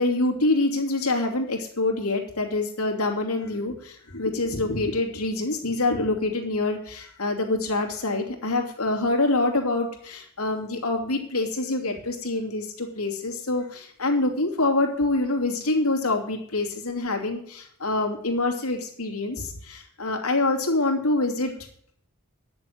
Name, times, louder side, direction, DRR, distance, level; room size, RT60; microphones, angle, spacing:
voice 1, 0.0-21.5, left 2 dB, 85° left, 2 dB, 2.8 m, -26 dB
10.5 x 7.1 x 9.2 m, 0.62 s
head